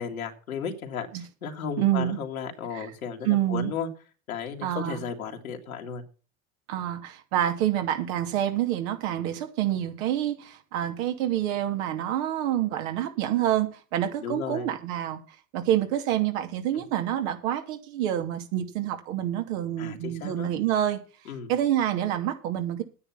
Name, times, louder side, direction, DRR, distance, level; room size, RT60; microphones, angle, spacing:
voice 1, 0.0-3.9 4.3-6.0 14.2-14.7 19.8-20.5 21.3-21.5, left 6 dB, 90° left, 2.4 m, -34 dB
voice 2, 1.8-2.2 2.7-2.9 3.2-3.7 4.6-5.0 6.7-15.2 15.5-21.0 21.5-22.8, right 11 dB, 70° right, 2.6 m, -27 dB
10.5 x 9.7 x 5.8 m
hypercardioid pair, 75°, 41 cm